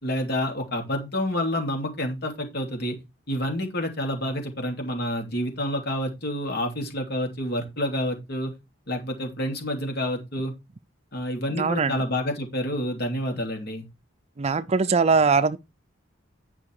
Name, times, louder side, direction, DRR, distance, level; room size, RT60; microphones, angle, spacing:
voice 1, 0.0-3.0 3.3-8.5 8.9-10.5 11.1-13.9, left 1 dB, 55° left, 2.9 m, -28 dB
voice 2, 11.5-12.0 14.4-15.6, right 4 dB, 35° right, 0.5 m, -21 dB
9.6 x 5.8 x 4.8 m
head